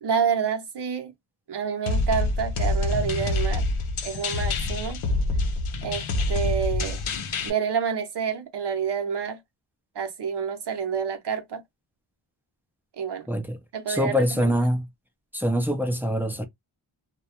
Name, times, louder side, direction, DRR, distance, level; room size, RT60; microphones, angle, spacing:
voice 1, 0.0-1.1 1.5-3.6 4.0-5.0 5.8-7.0 7.4-9.4 9.9-11.6 13.0-13.3 13.7-14.5, right 7 dB, 55° right, 0.7 m, -28 dB
sound 1, 1.9-7.5, left 2 dB, 75° left, 0.7 m, -26 dB
voice 2, 13.3-13.6 13.9-14.9 15.3-16.4, equal, 5° right, 0.4 m, -24 dB
2.2 x 2.1 x 2.8 m
wide cardioid pair, 105°, 49 cm